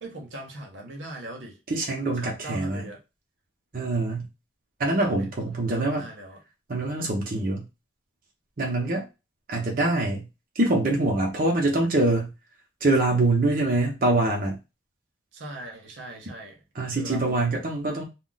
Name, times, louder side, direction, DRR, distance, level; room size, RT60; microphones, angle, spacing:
voice 1, 0.0-1.6 2.2-3.0 5.0-6.4 15.3-16.6 16.9-17.5, right 1 dB, 85° right, 0.9 m, -40 dB
voice 2, 1.7-2.9 3.7-4.3 4.8-6.1 6.7-7.6 8.6-9.0 9.5-10.3 10.6-12.3 12.8-14.6 16.7-18.0, right 2 dB, 50° right, 0.7 m, -24 dB
2.4 x 2.2 x 3.8 m
head